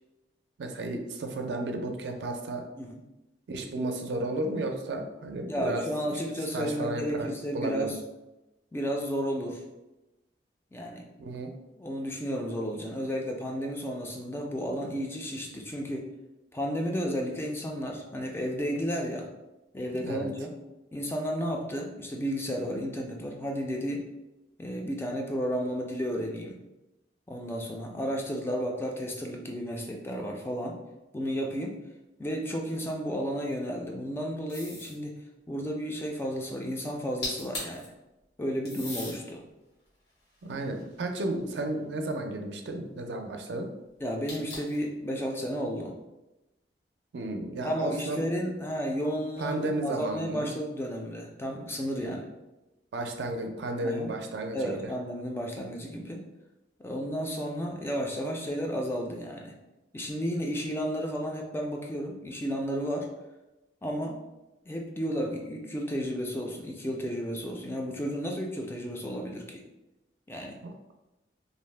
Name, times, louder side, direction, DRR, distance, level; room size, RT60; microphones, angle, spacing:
voice 1, 0.6-2.6 3.5-5.8 6.1-6.2 6.5-7.3 7.5-8.0 11.2-11.5 19.9-20.3 40.4-43.7 47.1-48.2 49.4-50.5 52.0-52.2 52.9-54.9, right 2 dB, 80° right, 4 dB, 0.4 m, -33 dB
voice 2, 5.5-8.0 8.7-9.6 10.7-11.1 11.8-16.1 16.5-19.3 19.7-20.5 20.9-24.1 24.6-26.6 27.3-30.8 31.1-31.8 32.2-35.1 35.5-37.9 38.4-39.4 44.0-45.9 47.6-52.2 53.8-54.1 54.5-56.2 56.8-59.5 59.9-63.1 63.8-64.2 64.7-69.6 70.3-70.6, equal, 15° left, 1 dB, 0.3 m, -32 dB
sound 1, 34.5-35.0 37.0-37.1 37.2-37.8 38.6-39.2 39.9-41.3 44.3-44.8, left 2 dB, 80° left, 1.5 m, -39 dB
2.5 x 2.0 x 3.1 m, 0.99 s
head